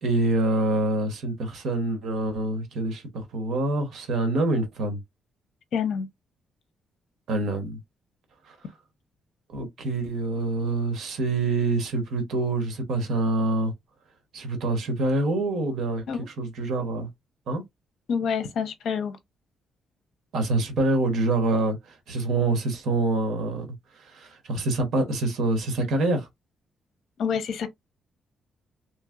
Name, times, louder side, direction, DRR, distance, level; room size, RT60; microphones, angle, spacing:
voice 1, 0.0-3.0 3.3-5.0 7.3-7.8 8.5-8.6 9.5-13.7 14.3-16.0 16.4-17.1 17.5-17.6 20.3-21.8 22.1-23.7 24.0-26.3, right 2 dB, 70° right, 1.1 m, -26 dB
voice 2, 5.7-6.1 16.1-16.3 18.1-19.2 27.2-27.7, left 6 dB, 70° left, 0.7 m, -27 dB
3.1 x 2.9 x 2.4 m
cardioid pair, 145°, 0 cm